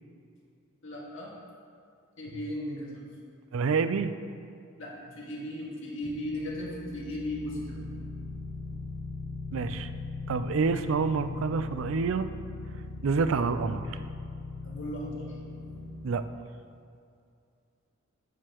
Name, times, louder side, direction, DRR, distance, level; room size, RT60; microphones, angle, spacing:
voice 1, 0.8-1.3 2.2-3.1 4.8-7.8 14.6-15.4, left 1 dB, 70° left, -4 dB, 1.9 m, -36 dB
voice 2, 3.5-4.1 9.5-9.9 10.3-12.3 13.0-13.8 16.0-16.2, right 4 dB, 70° right, 11 dB, 0.4 m, -27 dB
sound 1, 6.0-16.1, left 3 dB, 20° left, 0.9 m, -39 dB
9.1 x 8.3 x 3.0 m, 2.4 s
head